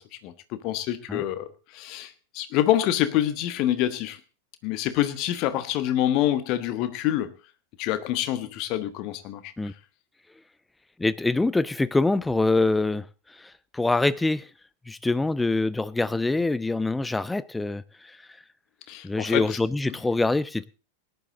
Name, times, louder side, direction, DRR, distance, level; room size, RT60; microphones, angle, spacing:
voice 1, 0.2-4.2 4.6-7.3 7.8-9.5 18.9-19.6, left 12 dB, 40° left, 1.4 m, -26 dB
voice 2, 11.0-13.1 13.7-14.5 14.9-17.8 19.0-20.7, left 2 dB, 10° left, 0.6 m, -24 dB
18.5 x 11.0 x 3.8 m
figure-of-eight pair, 90°, 0 cm